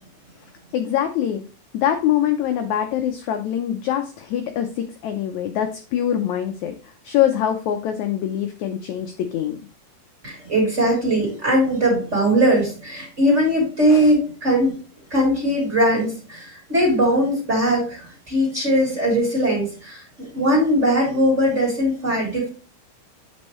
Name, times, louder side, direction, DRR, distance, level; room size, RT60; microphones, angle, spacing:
voice 1, 0.7-1.4 1.7-9.6 13.9-14.1, left 10 dB, 75° left, 6 dB, 1.7 m, -24 dB
voice 2, 10.2-14.8 15.1-20.0 20.3-22.5, equal, 20° right, -3 dB, 2.9 m, -20 dB
8.5 x 5.5 x 3.0 m, 0.37 s
omnidirectional pair, 4.0 m